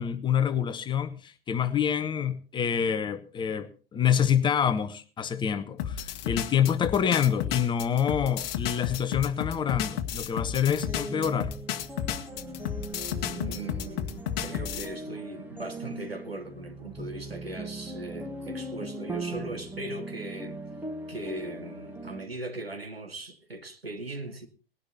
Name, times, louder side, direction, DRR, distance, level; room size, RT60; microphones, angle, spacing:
voice 1, 0.0-11.5, left 8 dB, 15° left, 1.1 m, -27 dB
sound 1, 5.8-14.9, left 10 dB, 35° left, 1.6 m, -32 dB
sound 2, 10.9-22.2, right 1 dB, 5° right, 2.0 m, -39 dB
voice 2, 13.3-20.6 21.1-24.5, right 2 dB, 85° right, 2.5 m, -39 dB
19.0 x 12.0 x 4.2 m
figure-of-eight pair, 105°, 29 cm